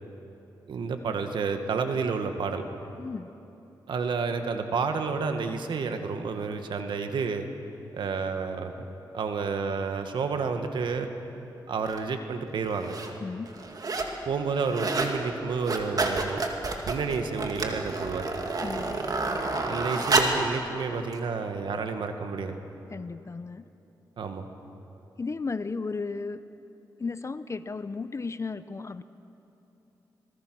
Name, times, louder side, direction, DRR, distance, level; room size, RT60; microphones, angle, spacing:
voice 1, 0.7-2.7 3.9-7.5 7.9-8.8 9.1-11.1 11.7-13.0 14.2-16.4 16.9-18.3 19.6-22.6 24.2-24.5, right 5 dB, 80° right, 7 dB, 1.6 m, -30 dB
voice 2, 3.0-3.3 13.2-13.5 18.6-19.1 22.9-23.6 25.2-26.4 27.0-29.0, left 4 dB, 35° left, 13 dB, 0.7 m, -34 dB
sound 1, 11.9-12.0 12.7-13.1 13.5-14.2 14.5-15.2 15.5-20.5 21.1-21.2, right 3 dB, 50° right, 2.4 m, -29 dB
27.0 x 20.5 x 6.2 m, 3.0 s
cardioid pair, 65°, 8 cm